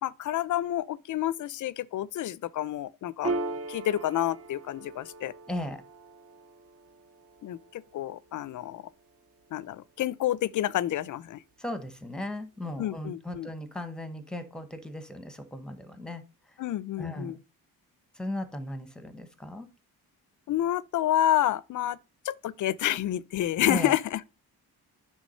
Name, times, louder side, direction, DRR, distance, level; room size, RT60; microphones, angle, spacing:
voice 1, 0.0-3.3 3.7-5.3 7.4-8.9 9.5-11.4 12.8-13.5 16.6-17.4 20.5-22.0 22.2-24.2, left 12 dB, 55° left, 0.5 m, -29 dB
Piano, 3.2-10.2, right 2 dB, 40° right, 0.7 m, -39 dB
voice 2, 5.5-5.8 11.6-16.2 17.0-17.4 18.1-19.7 23.7-24.0, left 1 dB, ahead, 0.9 m, -37 dB
9.6 x 3.4 x 5.5 m
cardioid pair, 145°, 38 cm